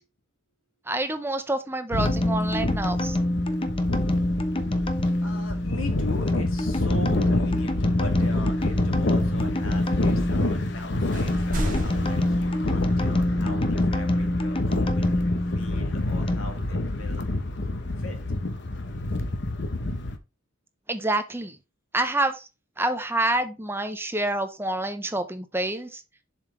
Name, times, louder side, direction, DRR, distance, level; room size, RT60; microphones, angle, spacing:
voice 1, 0.9-3.2 20.9-21.6 21.9-22.5 22.8-26.0, right 2 dB, 10° right, 8 dB, 0.7 m, -27 dB
sound 1, 1.9-20.2, left 2 dB, 55° left, 1.0 m, -28 dB
sound 2, 1.9-16.4, left 1 dB, 25° left, 0.8 m, -27 dB
voice 2, 4.1-17.3 18.0-18.2, left 2 dB, 85° left, 4 dB, 2.3 m, -41 dB
sound 3, 10.6-10.8 11.1-13.2, right 1 dB, 40° right, 2.1 m, -34 dB
7.3 x 5.6 x 3.2 m, 0.27 s
head